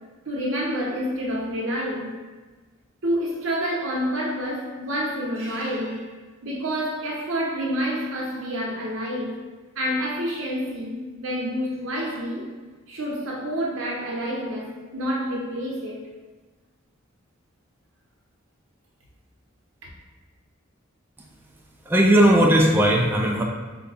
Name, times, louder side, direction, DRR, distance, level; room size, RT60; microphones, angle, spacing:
voice 1, 0.2-2.1 3.0-6.1 6.4-9.4 9.7-12.4 12.9-16.1, equal, 80° right, -3 dB, 1.0 m, -28 dB
voice 2, 21.9-23.4, right 1 dB, 10° right, -1 dB, 0.3 m, -17 dB
5.0 x 2.3 x 4.0 m, 1.3 s
head